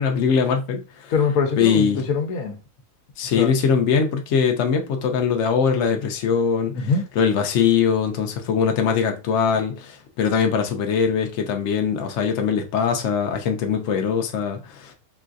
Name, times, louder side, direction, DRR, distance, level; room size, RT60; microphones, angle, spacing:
voice 1, 0.0-1.1 1.6-2.0 3.2-6.9 7.2-14.9, left 6 dB, 65° left, 0.8 m, -22 dB
voice 2, 1.1-2.6 3.2-3.5 6.7-7.0, left 5 dB, 85° left, 1.1 m, -23 dB
3.8 x 2.6 x 2.3 m
omnidirectional pair, 1.5 m